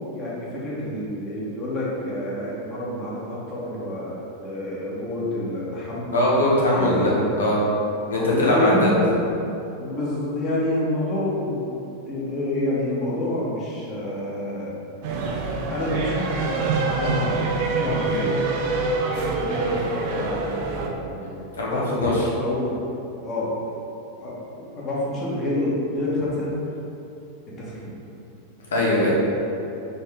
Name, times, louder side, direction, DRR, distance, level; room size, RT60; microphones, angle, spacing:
voice 1, 0.0-6.2 6.7-7.4 8.2-9.2 9.8-14.7 15.7-17.4 17.7-18.4 19.1-21.3 21.7-22.2 22.4-22.8 23.2-23.5 24.2-26.5 27.6-27.9, left 1 dB, 30° left, -7 dB, 1.4 m, -28 dB
voice 2, 6.1-7.1 7.4-7.5 8.1-8.9 21.2-22.2 28.7-29.1, left 1 dB, 70° left, -5 dB, 1.0 m, -21 dB
sound 1, 15.0-20.9, right 3 dB, 50° right, 0.5 m, -25 dB
4.1 x 3.2 x 3.6 m, 2.8 s
figure-of-eight pair, 90°, 0 cm